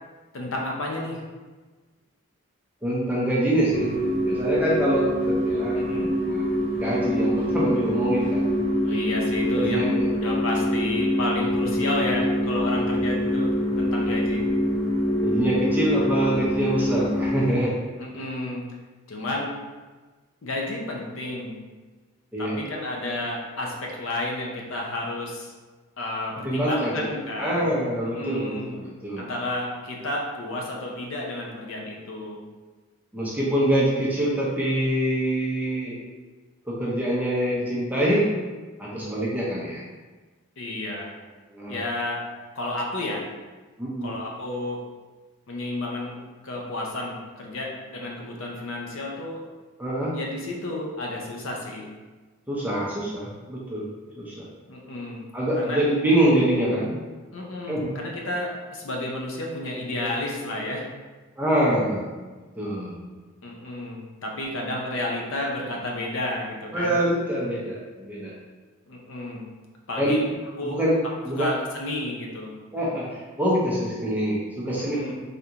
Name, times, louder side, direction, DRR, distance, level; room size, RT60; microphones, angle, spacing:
voice 1, 0.3-1.2 5.8-6.2 8.8-14.5 18.0-18.7 19.1-19.6 20.4-21.6 22.4-25.5 26.0-27.8 28.1-28.8 29.2-32.4 40.6-41.1 41.7-42.3 42.6-43.3 44.0-44.9 45.5-49.4 50.1-51.9 54.7-55.2 55.6-55.8 57.3-60.9 63.4-67.0 68.9-69.5 69.9-70.2 70.6-70.8 71.4-72.6 74.8-75.1, left 1 dB, 65° left, -1 dB, 0.5 m, -31 dB
voice 2, 2.8-4.0 4.3-5.8 6.3-8.4 9.6-10.1 15.2-17.8 22.3-22.6 26.4-27.1 27.4-29.2 33.1-36.0 36.7-38.3 38.8-39.8 41.5-41.8 43.8-44.1 49.8-50.2 52.5-53.9 54.2-54.5 55.3-57.0 57.7-57.9 61.4-63.0 66.7-68.3 70.0-70.2 70.6-71.5 72.7-75.0, right 1 dB, 5° right, -6 dB, 0.5 m, -25 dB
sound 1, 3.7-17.5, equal, 25° left, 1.1 m, -25 dB
3.4 x 2.5 x 2.8 m, 1.3 s
head